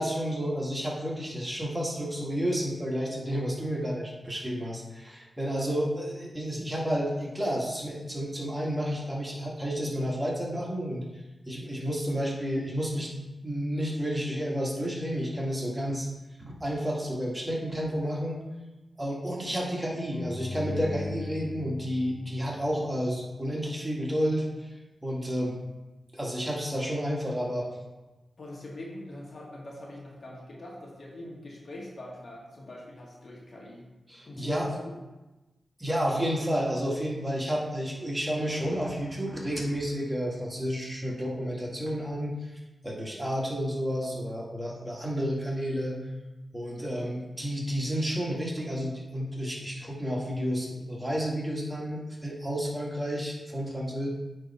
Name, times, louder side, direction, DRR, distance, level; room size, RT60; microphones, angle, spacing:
voice 1, 0.0-11.1 11.5-16.1 16.4-18.4 19.0-24.7 25.0-25.6 26.1-27.7 34.1-34.7 35.8-42.5 42.8-46.0 46.5-54.1, equal, 15° right, -3 dB, 2.0 m, -31 dB
sound 1, 20.1-23.3, left 2 dB, 5° left, 0.7 m, -39 dB
voice 2, 28.4-33.8 34.3-34.8, left 1 dB, 60° left, -3 dB, 1.8 m, -43 dB
9.5 x 3.4 x 4.3 m, 1.1 s
cardioid pair, 45°, 0 cm